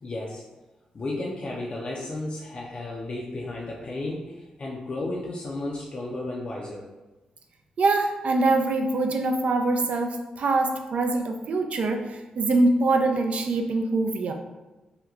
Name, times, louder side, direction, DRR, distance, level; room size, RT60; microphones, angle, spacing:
voice 1, 0.0-0.4 0.9-6.9, left 2 dB, 45° left, -3 dB, 0.5 m, -33 dB
voice 2, 7.8-14.3, right 2 dB, 60° right, 4 dB, 0.4 m, -24 dB
2.9 x 2.2 x 3.6 m, 1.1 s
cardioid pair, 65°, 2 cm